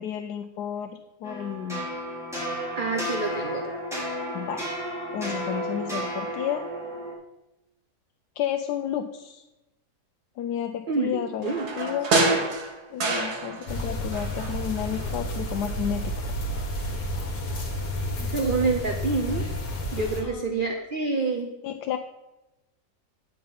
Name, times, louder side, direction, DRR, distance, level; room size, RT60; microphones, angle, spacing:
voice 1, 0.0-1.8 4.3-4.7 5.1-6.6 8.4-9.4 10.4-12.1 12.9-16.4 18.2-18.5 20.2-20.5 21.6-22.0, left 9 dB, 90° left, 6 dB, 1.2 m, -32 dB
sound 1, 1.2-7.1, equal, ahead, 3.5 m, -32 dB
voice 2, 2.7-3.6 10.9-11.7 18.2-19.4 19.9-21.5, right 3 dB, 45° right, 3 dB, 0.7 m, -27 dB
sound 2, 11.4-13.9 14.1-15.2 15.5-15.6, right 2 dB, 75° right, 2.1 m, -27 dB
sound 3, 13.7-20.2, equal, 65° left, 2.0 m, -31 dB
9.6 x 6.6 x 5.5 m, 0.97 s
omnidirectional pair, 1.7 m